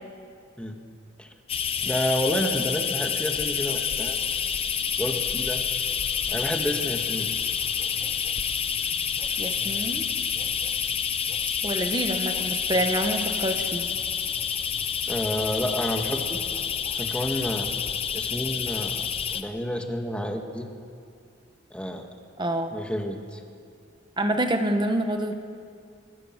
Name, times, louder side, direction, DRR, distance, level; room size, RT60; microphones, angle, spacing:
sound 1, 1.5-19.4, left 7 dB, 30° left, 1.0 m, -28 dB
voice 1, 1.8-4.2 5.0-5.6 6.3-7.5 15.1-16.4 16.9-17.7 18.1-19.1 19.3-20.7 21.7-22.1 22.7-23.4, equal, 5° left, 3 dB, 2.0 m, -30 dB
voice 2, 9.4-10.0 11.6-13.9 22.4-22.7 24.2-25.3, right 1 dB, 20° right, 6 dB, 1.6 m, -27 dB
25.0 x 23.0 x 7.6 m, 2.4 s
head